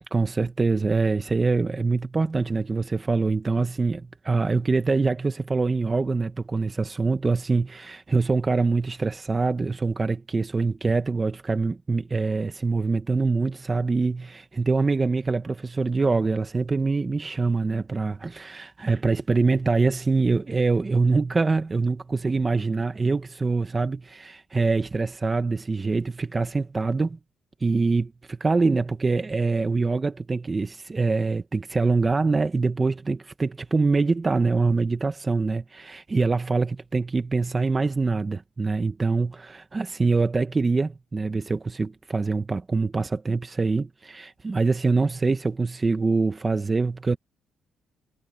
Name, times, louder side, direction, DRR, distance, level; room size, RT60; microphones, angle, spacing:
voice 1, 0.1-27.2 27.6-47.2, right 3 dB, 25° right, 1.3 m, -24 dB
cardioid pair, 90°, 0 cm